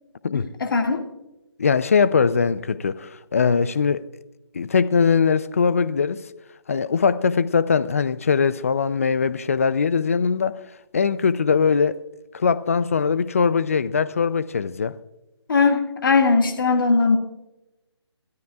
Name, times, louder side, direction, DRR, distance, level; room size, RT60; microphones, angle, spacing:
voice 1, 0.3-1.1 15.5-17.2, left 4 dB, 50° left, 1.9 m, -19 dB
voice 2, 1.6-4.0 4.5-6.2 6.7-10.6 10.9-12.0 12.3-14.9, left 5 dB, 30° left, 0.4 m, -21 dB
26.5 x 13.5 x 2.4 m
figure-of-eight pair, 165°, 15 cm